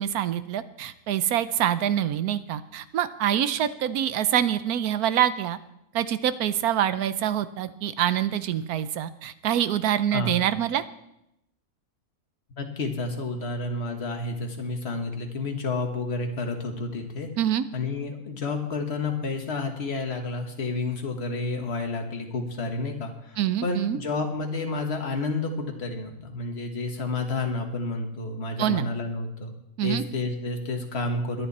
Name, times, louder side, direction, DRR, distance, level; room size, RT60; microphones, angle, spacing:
voice 1, 0.0-5.6 5.9-10.8 17.4-17.6 23.4-24.0 28.6-28.9 29.8-30.0, right 10 dB, 85° right, 14 dB, 1.2 m, -25 dB
voice 2, 12.6-17.3 17.7-29.5 29.8-31.5, left 3 dB, 45° left, 3 dB, 1.8 m, -30 dB
22.0 x 9.3 x 4.2 m, 0.83 s
omnidirectional pair, 1.5 m